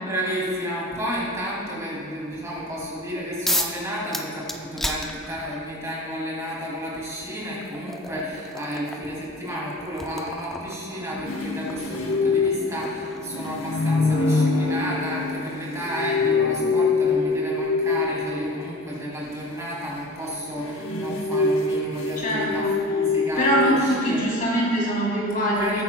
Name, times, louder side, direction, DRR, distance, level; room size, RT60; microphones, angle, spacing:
voice 1, 0.0-24.2 25.5-25.8, equal, 15° right, -6 dB, 2.6 m, -31 dB
sound 1, 3.5-3.8 4.1-5.7 6.8-6.9 7.4-14.1, equal, ahead, 0.4 m, -33 dB
sound 2, 11.2-18.5 20.4-23.7, left 4 dB, 70° left, 1.0 m, -24 dB
voice 2, 22.2-22.7 23.4-25.8, equal, 40° left, -5 dB, 2.7 m, -23 dB
21.0 x 9.4 x 2.3 m, 2.5 s
head